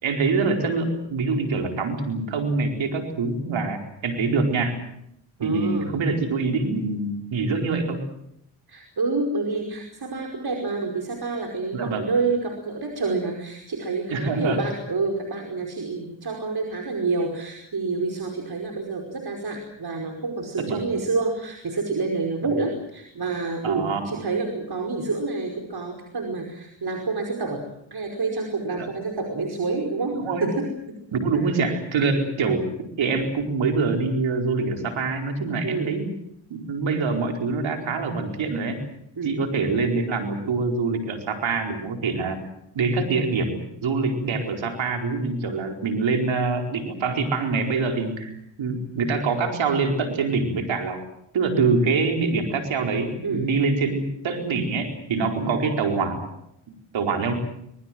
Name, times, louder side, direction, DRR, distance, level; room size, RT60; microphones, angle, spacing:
voice 1, 0.0-4.8 5.4-8.0 11.7-12.1 14.1-14.6 20.6-20.9 22.4-22.5 23.6-24.1 28.8-28.9 30.2-30.5 31.1-32.7 33.0-36.1 36.5-38.8 39.2-42.4 42.7-51.1 51.3-56.3 56.7-57.3, right 4 dB, 85° right, 4 dB, 4.6 m, -25 dB
voice 2, 5.4-6.0 8.7-31.0 31.3-31.4 35.6-36.0 39.2-39.3 53.2-53.5 55.4-55.6, right 3 dB, 55° right, 2 dB, 5.2 m, -28 dB
26.0 x 21.0 x 7.7 m, 0.75 s
supercardioid pair, 45°, 45 cm